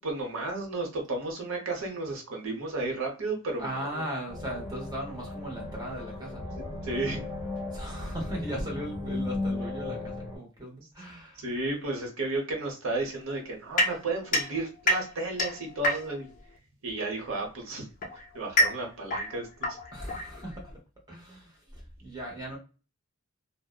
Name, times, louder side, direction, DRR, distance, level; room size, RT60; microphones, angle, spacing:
voice 1, 0.0-4.1 6.5-7.2 11.4-16.3 16.8-17.9 18.1-19.8, right 2 dB, 70° right, 0.9 m, -33 dB
voice 2, 3.6-6.4 7.7-11.4 19.9-20.7 21.1-22.6, right 1 dB, 20° right, 0.8 m, -37 dB
sound 1, 4.3-10.4, left 2 dB, ahead, 1.1 m, -36 dB
sound 2, 13.8-16.4 17.4-20.8, left 1 dB, 35° left, 0.4 m, -29 dB
2.6 x 2.0 x 2.3 m
head